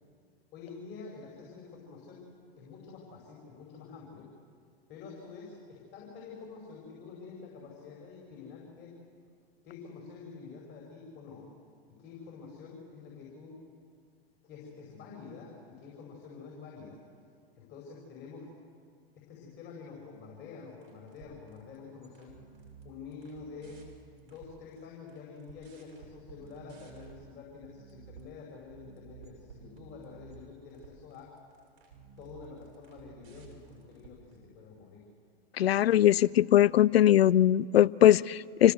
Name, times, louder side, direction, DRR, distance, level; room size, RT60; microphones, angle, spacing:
voice 1, 0.5-2.2 2.6-4.3 4.9-8.9 9.6-11.5 11.9-13.6 14.4-17.0 17.6-18.5 19.2-22.3 22.8-23.8 24.2-31.3 32.2-35.0 35.9-36.2, left 5 dB, 35° left, 5.5 m, -48 dB
sound 1, 20.8-21.8 22.0-24.8 25.1-27.2 27.6-28.3 28.7-34.4, right 6 dB, 60° right, 6.6 m, -53 dB
voice 2, 35.6-38.7, left 12 dB, 75° left, 0.5 m, -21 dB
27.0 x 16.5 x 8.0 m
hypercardioid pair, 105°, 31 cm